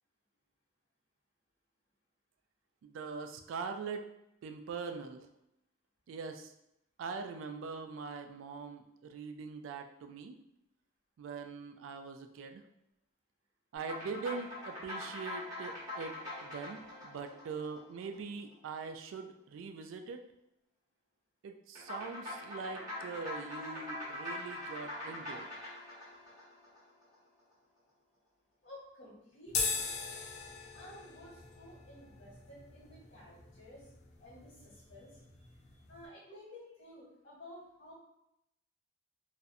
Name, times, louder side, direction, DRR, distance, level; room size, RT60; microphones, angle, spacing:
voice 1, 2.8-4.1 4.4-5.3 6.1-6.5 7.0-10.4 11.2-12.6 13.7-20.2 21.4-25.5, right 5 dB, 90° right, 6 dB, 0.3 m, -42 dB
sound 1, 13.8-18.4 21.8-27.2, left 1 dB, 20° right, 0.9 m, -43 dB
voice 2, 28.6-29.9 30.7-33.9 34.2-35.2 35.9-37.9, left 1 dB, 55° left, -6 dB, 1.0 m, -53 dB
sound 2, 29.5-36.1, left 4 dB, 35° left, 0.3 m, -41 dB
2.4 x 2.1 x 2.5 m, 0.83 s
head